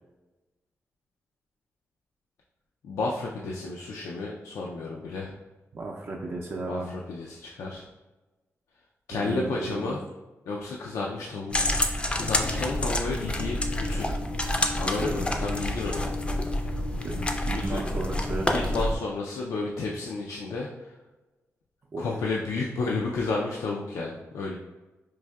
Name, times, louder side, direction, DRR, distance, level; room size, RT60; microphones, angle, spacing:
voice 1, 2.8-5.4 6.7-7.8 9.1-10.0 10.5-11.8 12.1-14.1 14.8-16.0 17.4-17.8 18.5-20.9 22.0-24.6, left 3 dB, 85° left, -2 dB, 0.4 m, -32 dB
voice 2, 5.7-6.9 9.1-10.0 15.0-15.2 17.0-18.5 21.9-22.1, right 2 dB, 45° right, -2 dB, 0.4 m, -34 dB
sound 1, 11.5-19.0, left 1 dB, 20° left, 0.4 m, -28 dB
4.6 x 2.6 x 2.2 m, 1.1 s
cardioid pair, 90°, 5 cm